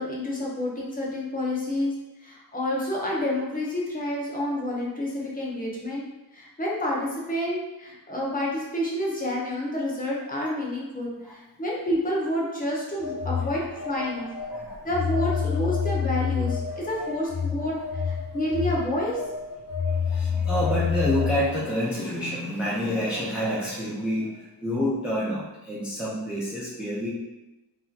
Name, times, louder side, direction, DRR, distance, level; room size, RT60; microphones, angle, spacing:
voice 1, 0.0-1.9 2.2-6.0 6.3-14.2 14.8-17.8 18.0-19.2 22.0-22.1, left 1 dB, 20° left, -4 dB, 0.8 m, -29 dB
Telephone, 13.0-21.6, left 6 dB, 55° left, 0.8 m, -28 dB
voice 2, 13.5-13.9 14.2-14.9 17.0-17.1 17.6-17.7 18.3-18.4 19.7-27.1, equal, 5° right, -8 dB, 0.5 m, -29 dB
3.5 x 2.8 x 2.4 m, 1.0 s
wide cardioid pair, 135°, 40 cm